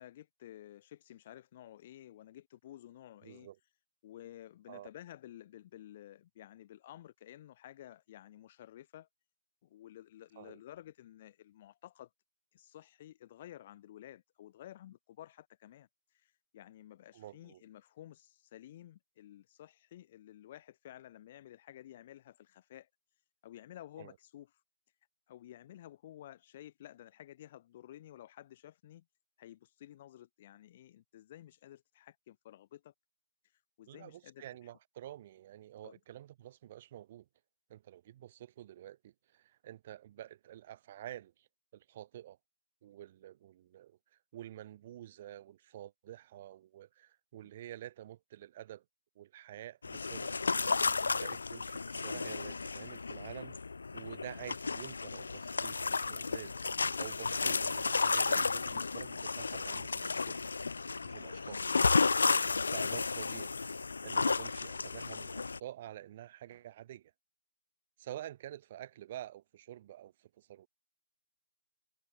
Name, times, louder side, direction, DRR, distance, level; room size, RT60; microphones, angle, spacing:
voice 1, 0.0-3.5 4.0-9.1 9.6-12.1 12.5-22.9 23.4-24.6 25.3-29.0 29.4-32.9 33.4-34.7 35.8-36.0, left 12 dB, 15° left, 2.1 m, -53 dB
voice 2, 3.2-3.6 4.7-4.9 10.4-10.6 17.1-17.6 24.0-24.1 33.9-37.2 37.7-42.4 42.8-44.0 44.3-48.8 49.1-50.3 51.0-53.6 53.9-60.4 61.0-61.6 62.7-63.6 64.0-67.1 68.0-70.7, right 12 dB, 15° right, 4.7 m, -49 dB
sound 1, 49.8-65.6, left 4 dB, 50° left, 1.1 m, -33 dB
hypercardioid pair, 180°, 0 cm